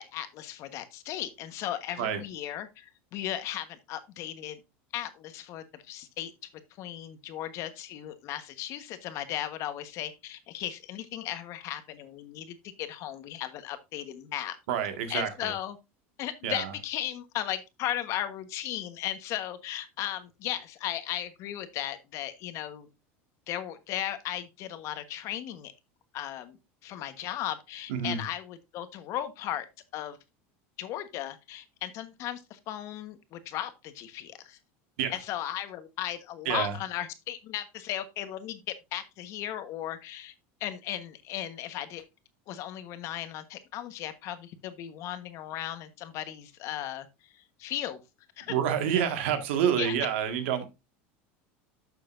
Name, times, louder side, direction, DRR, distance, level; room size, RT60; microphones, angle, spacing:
voice 1, 0.0-4.6 4.9-6.3 6.8-14.6 15.1-15.8 16.2-22.9 23.5-25.7 26.1-26.6 26.8-29.7 29.9-30.2 30.8-34.6 35.1-40.3 40.6-42.0 42.5-47.1 47.3-48.0 48.4-48.5 49.7-50.0, left 12 dB, 55° left, 1.3 m, -36 dB
voice 2, 14.7-15.5 16.4-16.7 27.9-28.2 35.0-35.1 36.5-36.7 48.5-50.7, right 8 dB, 80° right, 1.8 m, -28 dB
11.5 x 6.7 x 2.6 m
supercardioid pair, 125°, 6 cm